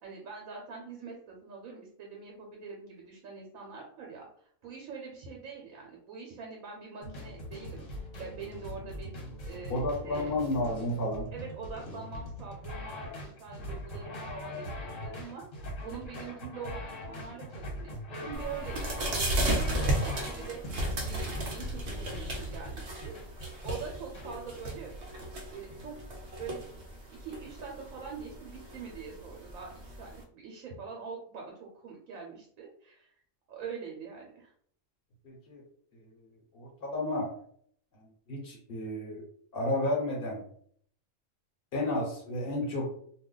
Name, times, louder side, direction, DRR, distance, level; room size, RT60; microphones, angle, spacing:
voice 1, 0.0-4.3 4.6-7.8 8.2-9.1 9.4-10.3 11.3-14.7 15.0-15.4 15.8-20.6 21.1-24.9 25.2-26.0 26.4-26.6 27.1-33.1 33.5-34.5, right 5 dB, 80° right, 0 dB, 1.1 m, -44 dB
sound 1, 7.0-24.3, equal, 65° left, 1.3 m, -41 dB
voice 2, 9.7-11.3 35.2-35.6 36.5-37.3 38.0-39.2 39.5-40.4 41.7-42.9, left 1 dB, 45° left, -1 dB, 1.1 m, -32 dB
sound 2, 18.3-30.2, right 1 dB, 55° right, 0.8 m, -35 dB
2.5 x 2.2 x 3.7 m, 0.62 s
omnidirectional pair, 1.4 m